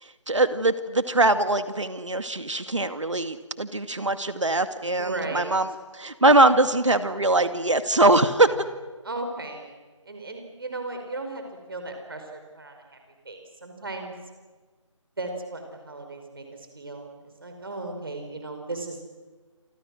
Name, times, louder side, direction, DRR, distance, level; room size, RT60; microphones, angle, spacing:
voice 1, 0.0-8.5, right 2 dB, 65° right, 10 dB, 2.2 m, -22 dB
voice 2, 5.0-5.5 9.0-9.7 10.0-11.4 11.7-13.0 13.2-14.1 15.2-17.1 17.4-19.1, right 2 dB, 45° right, 4 dB, 5.1 m, -36 dB
27.5 x 26.0 x 6.4 m, 1.4 s
figure-of-eight pair, 165°, 17 cm